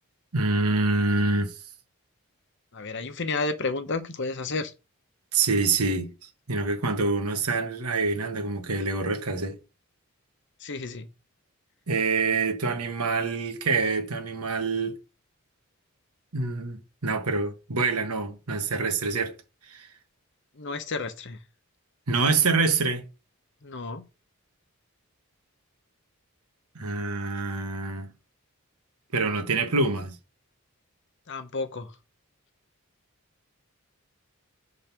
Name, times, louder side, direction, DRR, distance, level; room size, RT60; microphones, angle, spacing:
voice 1, 0.3-1.5 5.3-9.6 11.9-15.0 16.3-19.3 19.7-19.9 22.1-23.1 26.7-28.1 29.1-30.2, right 3 dB, 85° right, 1.3 m, -26 dB
voice 2, 2.7-4.7 10.6-11.1 20.6-21.4 23.6-24.0 31.3-31.9, left 3 dB, 55° left, 0.9 m, -31 dB
5.3 x 3.9 x 5.9 m
head